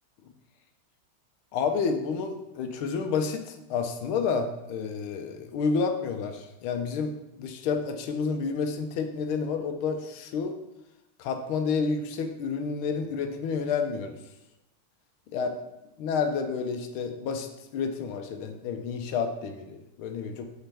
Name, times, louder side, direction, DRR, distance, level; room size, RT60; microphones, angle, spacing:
voice 1, 1.5-10.6 11.2-14.2 15.3-15.5 16.0-17.5 17.7-20.5, left 5 dB, 85° left, 6 dB, 1.5 m, -30 dB
8.1 x 4.3 x 3.4 m, 0.91 s
omnidirectional pair, 2.3 m